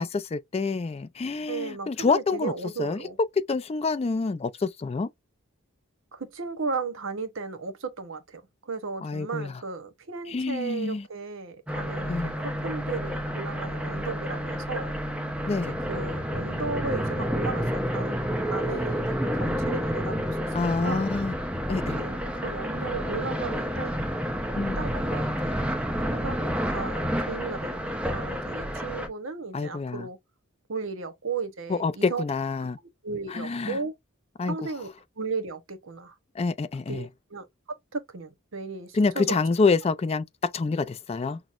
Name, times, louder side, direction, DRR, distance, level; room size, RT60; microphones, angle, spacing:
voice 1, 0.0-2.5 2.8-3.0 3.5-5.1 9.0-9.5 10.3-11.0 12.1-12.4 15.5-15.8 20.5-21.3 21.7-22.0 24.6-24.8 29.5-30.1 31.7-32.8 33.3-33.8 34.4-34.6 36.4-37.0 38.9-41.4, left 4 dB, 30° left, 0.3 m, -27 dB
voice 2, 1.5-3.2 6.1-15.0 15.7-18.2 18.4-21.1 21.9-24.0 24.8-25.6 26.1-30.2 30.7-32.2 33.0-33.9 34.4-34.9 35.2-36.1 36.9-39.4, right 4 dB, 65° right, 0.9 m, -35 dB
sound 1, 11.7-29.1, equal, 5° right, 0.7 m, -29 dB
6.0 x 2.0 x 2.5 m
head